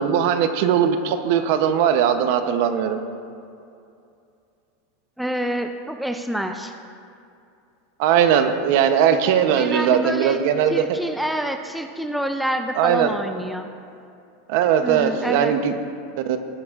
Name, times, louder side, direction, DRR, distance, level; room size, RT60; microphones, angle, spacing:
voice 1, 0.0-3.0 8.0-10.7 12.8-13.1 14.5-15.7 16.3-16.4, right 8 dB, 60° right, 8 dB, 0.7 m, -19 dB
voice 2, 5.2-6.7 9.5-10.4 10.7-13.7 14.8-15.5, right 1 dB, ahead, 5 dB, 0.4 m, -27 dB
16.5 x 9.7 x 2.5 m, 2.5 s
supercardioid pair, 155°, 0 cm